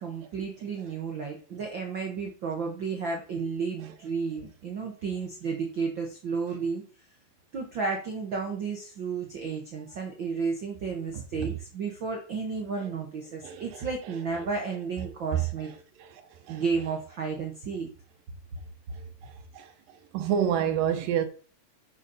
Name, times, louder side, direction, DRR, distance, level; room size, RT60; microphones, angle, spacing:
voice 1, 0.0-6.8 7.5-15.7 16.5-17.9, right 5 dB, 60° right, 1.2 m, -32 dB
voice 2, 11.1-11.5 13.4-13.8 15.3-15.4 16.0-16.2 16.5-16.6 19.0-19.7 20.1-21.3, right 9 dB, 80° right, 2.5 m, -29 dB
8.3 x 7.0 x 4.0 m
omnidirectional pair, 4.0 m